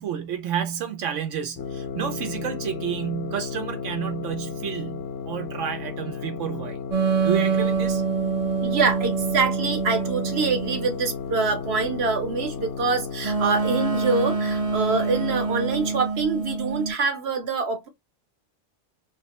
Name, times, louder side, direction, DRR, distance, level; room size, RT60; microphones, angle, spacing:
voice 1, 0.0-6.8 7.2-8.0, right 8 dB, 85° right, 1.0 m, -30 dB
sound 1, 1.6-16.1, left 6 dB, 75° left, 0.9 m, -34 dB
sound 2, 6.9-10.9 13.2-16.9, right 5 dB, 40° right, 0.5 m, -26 dB
voice 2, 8.6-17.9, right 4 dB, 65° right, 1.0 m, -25 dB
3.8 x 2.1 x 2.8 m
omnidirectional pair, 1.2 m